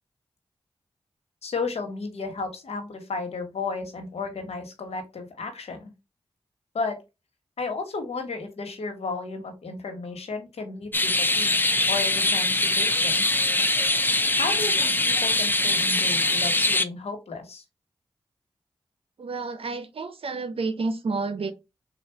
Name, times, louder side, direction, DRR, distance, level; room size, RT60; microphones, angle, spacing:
voice 1, 1.4-5.9 6.7-7.0 7.6-11.5 11.9-13.2 14.4-17.6, left 4 dB, 80° left, 1.2 m, -33 dB
sound 1, 10.9-16.8, left 2 dB, 20° left, 0.5 m, -22 dB
voice 2, 19.2-21.5, right 3 dB, 65° right, 0.6 m, -30 dB
3.8 x 2.4 x 4.4 m
cardioid pair, 40°, 10 cm